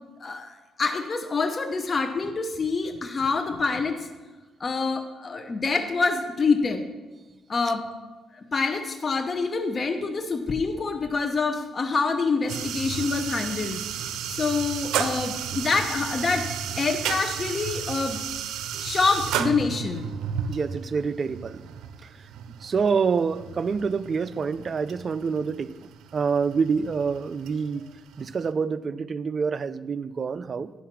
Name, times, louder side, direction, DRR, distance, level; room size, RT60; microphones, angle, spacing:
voice 1, 0.2-4.1 4.6-6.8 7.5-7.9 8.3-13.8 14.3-18.2 18.8-20.1, left 4 dB, 35° left, 0.8 m, -26 dB
sound 1, 12.5-28.5, right 8 dB, 85° right, 0.6 m, -33 dB
voice 2, 20.5-21.6 22.0-22.3 22.6-27.9 28.2-30.7, right 5 dB, 45° right, 0.4 m, -27 dB
10.0 x 5.6 x 5.9 m
cardioid pair, 90°, 0 cm